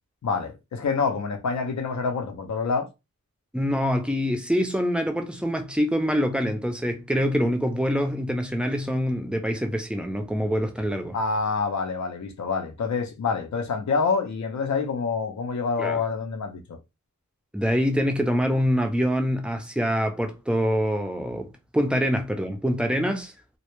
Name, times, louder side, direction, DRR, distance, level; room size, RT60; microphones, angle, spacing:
voice 1, 0.2-2.9 11.1-16.8, left 4 dB, 60° left, 0.5 m, -27 dB
voice 2, 3.5-11.2 15.8-16.0 17.5-21.5 21.7-23.3, equal, 5° right, 0.4 m, -25 dB
2.1 x 2.1 x 2.9 m
wide cardioid pair, 85°, 31 cm